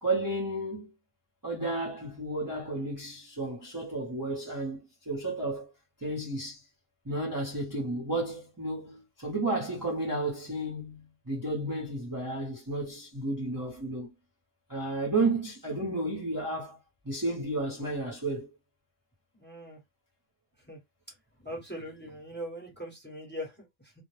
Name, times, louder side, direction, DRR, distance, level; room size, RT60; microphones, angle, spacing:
voice 1, 0.0-0.9 1.4-5.7 6.0-6.6 7.0-14.1 14.7-16.8 17.0-18.5, right 2 dB, 20° right, 0.7 m, -32 dB
voice 2, 19.3-19.8 20.7-20.8 21.4-23.9, equal, 10° left, 0.9 m, -41 dB
2.3 x 2.1 x 3.1 m
omnidirectional pair, 1.2 m